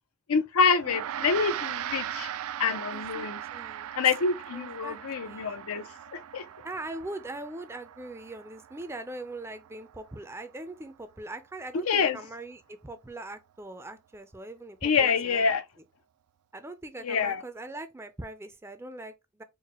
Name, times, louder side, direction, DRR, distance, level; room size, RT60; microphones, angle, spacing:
voice 1, 0.3-2.3 2.6-3.4 4.0-6.4 11.8-12.2 14.8-15.6 17.0-17.4, left 5 dB, 80° left, 0.5 m, -26 dB
Gong, 0.8-10.4, right 10 dB, 80° right, 0.3 m, -39 dB
voice 2, 2.9-3.9 4.5-5.5 6.6-15.4 16.5-19.4, right 2 dB, 10° right, 0.4 m, -41 dB
4.6 x 2.2 x 3.0 m
head